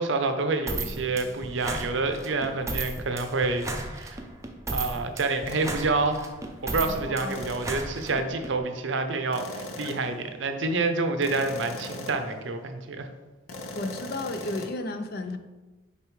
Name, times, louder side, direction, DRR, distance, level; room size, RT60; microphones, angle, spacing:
voice 1, 0.0-3.7 3.9-4.2 4.7-6.3 6.6-13.1, right 3 dB, 60° right, 7 dB, 0.6 m, -28 dB
sound 1, 0.7-8.5, right 2 dB, 15° right, 0.5 m, -34 dB
sound 2, 5.5-5.7 7.3-7.8 9.3-10.2 11.2-12.3 13.5-14.7, left 2 dB, 85° left, 0.8 m, -39 dB
voice 2, 7.1-7.4 13.7-15.4, left 2 dB, 50° left, 8 dB, 0.4 m, -33 dB
6.6 x 4.5 x 3.1 m, 1.1 s
head